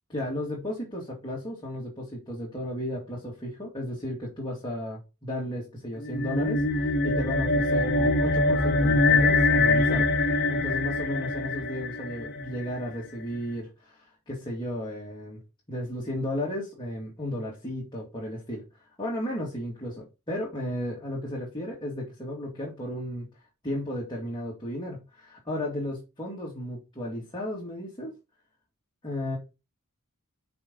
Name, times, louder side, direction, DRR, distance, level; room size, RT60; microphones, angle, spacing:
voice 1, 0.1-10.1 10.5-15.4 15.7-23.3 23.6-28.1 29.0-29.4, left 1 dB, 20° left, 2.4 m, -34 dB
sound 1, 6.0-12.7, left 2 dB, 50° left, 1.1 m, -24 dB
5.8 x 5.5 x 5.4 m
head